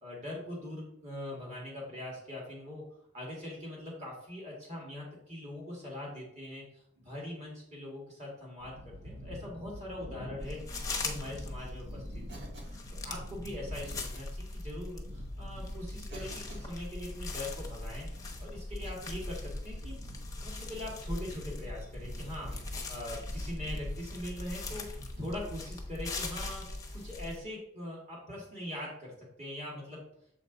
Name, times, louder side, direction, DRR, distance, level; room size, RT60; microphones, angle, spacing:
voice 1, 0.0-2.8 3.1-8.8 9.0-12.0 12.3-12.4 13.0-18.1 18.4-20.0 20.4-24.8 25.2-26.6 26.9-30.0, left 1 dB, 35° right, -3 dB, 2.1 m, -42 dB
sound 1, 8.6-27.3, equal, 90° right, 1.1 m, -49 dB
sound 2, 10.4-27.4, left 2 dB, 15° left, 0.8 m, -40 dB
Cough, 12.3-12.9 14.1-14.3 15.2-15.3 16.1-16.8 18.7-19.3 19.8-20.0 21.1-21.5 22.5-22.9 24.3-24.6 26.8-27.0 28.7-28.9, right 2 dB, 55° right, 1.5 m, -54 dB
7.1 x 5.0 x 4.0 m, 0.73 s
head